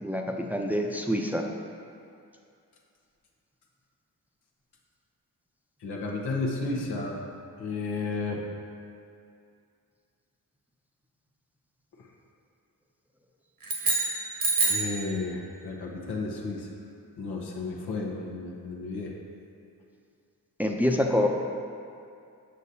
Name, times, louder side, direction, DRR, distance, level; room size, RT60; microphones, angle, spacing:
voice 1, 0.0-1.4 20.6-21.3, left 1 dB, 5° right, 1 dB, 0.6 m, -26 dB
voice 2, 5.8-7.2 7.6-8.5 14.6-16.7 17.2-19.1, left 3 dB, 85° left, -2 dB, 0.9 m, -32 dB
sound 1, 13.6-15.0, right 3 dB, 65° right, 1.3 m, -26 dB
6.5 x 6.3 x 2.8 m, 2.5 s
cardioid pair, 45°, 38 cm